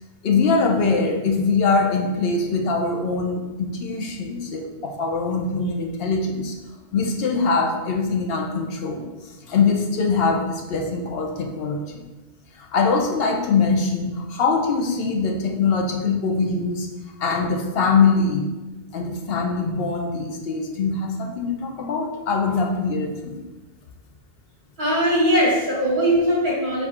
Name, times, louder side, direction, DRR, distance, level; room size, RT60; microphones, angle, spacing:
voice 1, 0.2-6.5 6.9-9.1 9.5-12.0 12.6-16.9 17.2-18.5 18.9-23.5, left 4 dB, 75° left, 2 dB, 0.9 m, -22 dB
voice 2, 24.8-26.9, equal, 55° right, -6 dB, 1.4 m, -20 dB
4.7 x 2.7 x 3.6 m, 1.2 s
omnidirectional pair, 1.0 m